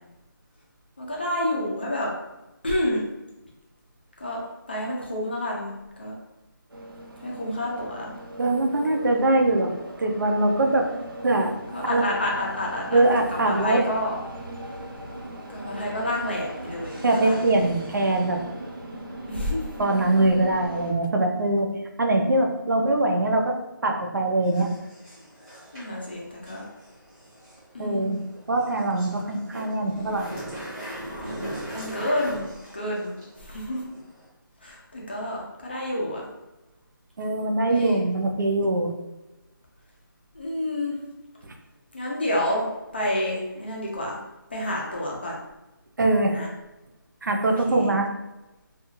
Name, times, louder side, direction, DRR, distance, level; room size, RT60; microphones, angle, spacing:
voice 1, 1.0-2.1 2.6-3.0 4.2-4.4 4.7-6.1 7.2-8.1 10.7-10.9 11.7-14.2 15.5-17.4 19.3-19.7 25.7-26.7 27.7-28.2 31.2-32.4 32.7-33.8 34.6-36.3 37.6-38.0 40.3-41.0 41.9-42.7 42.9-44.2 44.5-45.4 46.3-46.5 47.5-47.9, left 1 dB, 30° left, -3 dB, 0.4 m, -29 dB
sound 1, 6.7-20.9, right 1 dB, 80° right, 0.8 m, -39 dB
voice 2, 8.4-9.7 10.0-10.9 11.2-11.5 11.9-12.1 12.9-13.8 17.0-18.4 19.8-21.7 22.0-23.6 23.8-24.7 27.8-28.2 28.5-30.3 37.2-38.9 41.4-41.5 46.0-46.4 47.2-48.1, right 2 dB, 60° right, 2 dB, 0.5 m, -22 dB
sound 2, 24.4-34.3, right 1 dB, 10° right, 0.8 m, -40 dB
2.4 x 2.3 x 3.0 m, 1.0 s
figure-of-eight pair, 175°, 12 cm